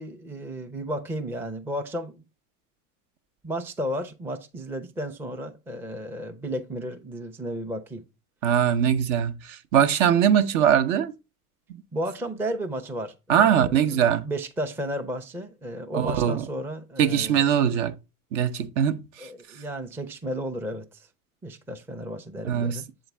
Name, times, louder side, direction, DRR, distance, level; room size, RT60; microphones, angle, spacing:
voice 1, 0.0-2.2 3.4-8.0 11.9-17.8 19.2-21.1 21.4-22.9, equal, 5° right, 0.4 m, -33 dB
voice 2, 8.4-11.1 13.3-14.3 15.9-16.4 17.0-17.9 18.3-19.3 22.4-22.8, right 9 dB, 55° right, 0.8 m, -22 dB
7.6 x 3.9 x 3.3 m
hypercardioid pair, 90°, 45 cm